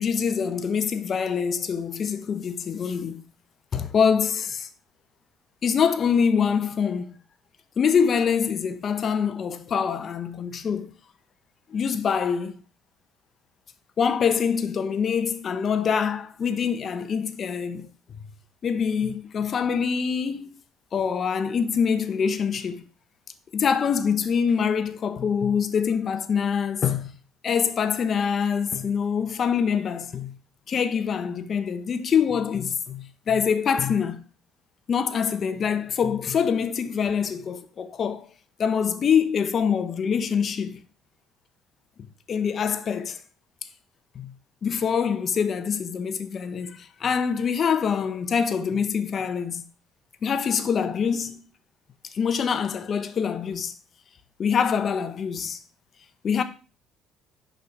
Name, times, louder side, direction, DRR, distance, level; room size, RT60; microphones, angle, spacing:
voice 1, 0.0-3.2 3.7-4.7 5.6-7.1 7.8-10.9 11.7-12.5 14.0-17.9 18.6-20.5 20.9-22.8 23.5-27.1 27.4-30.3 30.7-34.2 34.9-38.3 38.6-40.8 42.3-43.2 44.1-44.3 44.6-49.7 50.2-51.4 52.1-53.7 54.4-55.6 56.2-56.4, left 6 dB, 40° left, 0.8 m, -25 dB
6.3 x 5.5 x 4.5 m
cardioid pair, 120°, 0 cm